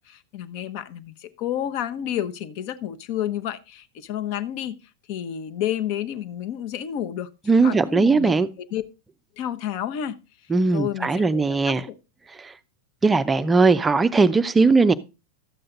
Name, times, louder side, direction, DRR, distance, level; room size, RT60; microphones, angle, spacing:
voice 1, 0.0-4.8 5.1-7.3 7.6-8.8 9.4-10.1 10.7-11.9, left 10 dB, 45° left, 0.9 m, -30 dB
voice 2, 7.5-8.5 10.5-11.9 12.4-12.5 13.0-14.9, right 4 dB, 15° right, 0.5 m, -19 dB
12.5 x 7.7 x 3.8 m
figure-of-eight pair, 90°, 0 cm